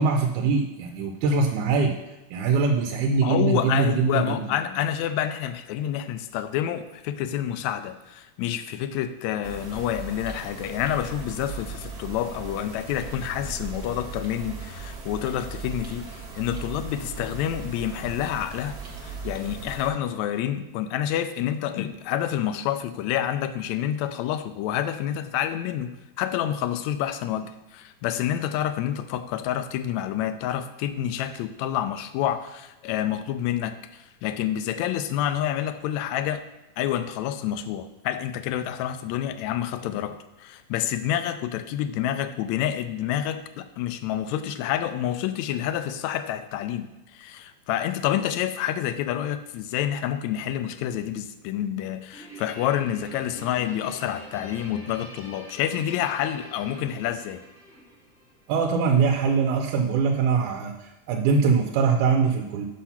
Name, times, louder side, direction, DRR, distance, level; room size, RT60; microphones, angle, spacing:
voice 1, 0.0-1.9 2.3-4.4 58.5-62.7, right 5 dB, 90° right, 3 dB, 2.1 m, -22 dB
voice 2, 3.2-18.8 19.0-36.5 36.8-57.4, left 11 dB, 80° left, 11 dB, 1.7 m, -28 dB
sound 1, 9.4-19.9, right 4 dB, 55° right, 1.0 m, -38 dB
Guitar, 52.1-58.8, right 1 dB, 5° right, 0.6 m, -46 dB
6.3 x 5.7 x 5.7 m, 1.0 s
omnidirectional pair, 3.5 m